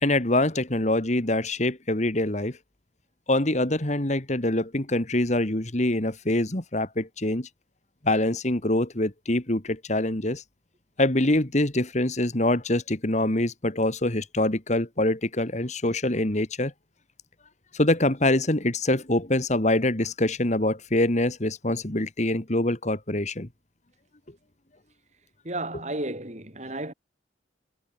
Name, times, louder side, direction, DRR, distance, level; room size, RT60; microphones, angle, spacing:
voice 1, 0.0-2.5 3.3-7.5 8.0-10.4 11.0-16.7 17.7-23.5 25.7-25.8, left 1 dB, 40° left, 2.2 m, -24 dB
voice 2, 25.4-26.9, right 2 dB, 40° right, 6.4 m, -33 dB
head